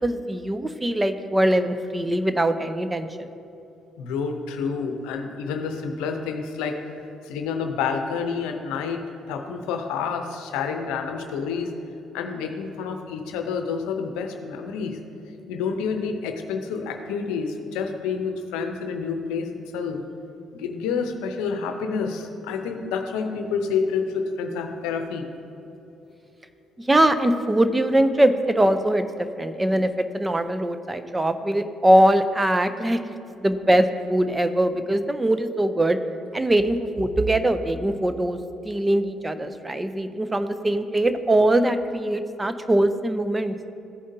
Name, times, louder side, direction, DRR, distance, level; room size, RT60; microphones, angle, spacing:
voice 1, 0.0-3.3 26.8-33.0 33.4-36.0 36.3-38.4 38.6-43.6, right 1 dB, 20° right, 10 dB, 0.6 m, -22 dB
voice 2, 4.0-6.8 7.2-11.7 12.1-15.0 15.5-20.0 20.5-25.3, left 5 dB, 85° left, 5 dB, 0.7 m, -28 dB
14.5 x 5.0 x 2.7 m, 2.8 s
supercardioid pair, 60°, 0 cm